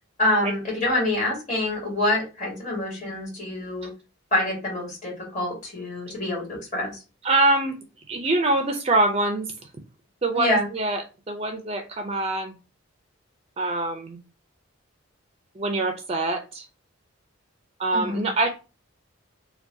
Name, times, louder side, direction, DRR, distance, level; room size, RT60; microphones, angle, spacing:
voice 1, 0.2-3.9 4.3-6.4 6.7-7.0 10.3-10.7 17.9-18.3, left 1 dB, 35° left, -3 dB, 1.8 m, -26 dB
voice 2, 7.2-7.8 8.1-9.5 10.2-12.5 13.6-14.2 15.6-16.7 17.8-18.5, right 2 dB, 30° right, 5 dB, 0.4 m, -24 dB
4.6 x 2.2 x 2.6 m, 0.31 s
head